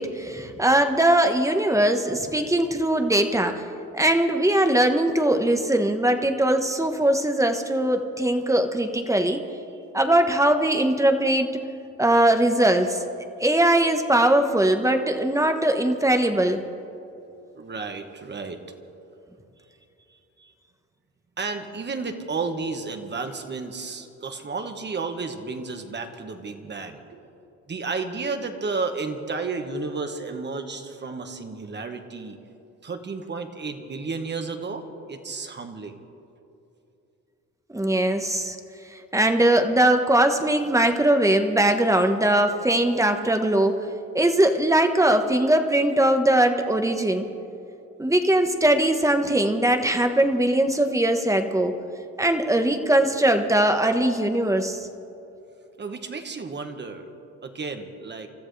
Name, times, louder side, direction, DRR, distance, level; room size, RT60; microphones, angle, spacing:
voice 1, 0.0-3.6 3.9-9.4 9.9-11.6 12.0-13.0 13.4-16.6 37.7-38.6 39.1-43.8 44.1-47.3 48.0-51.7 52.2-54.9, right 1 dB, 10° right, 6 dB, 1.2 m, -21 dB
voice 2, 17.5-18.6 20.1-20.5 21.4-27.3 27.7-32.4 32.8-36.0 55.8-57.1 57.4-58.3, right 4 dB, 35° right, 5 dB, 1.6 m, -32 dB
28.5 x 14.0 x 3.4 m, 2.8 s
cardioid pair, 90°, 30 cm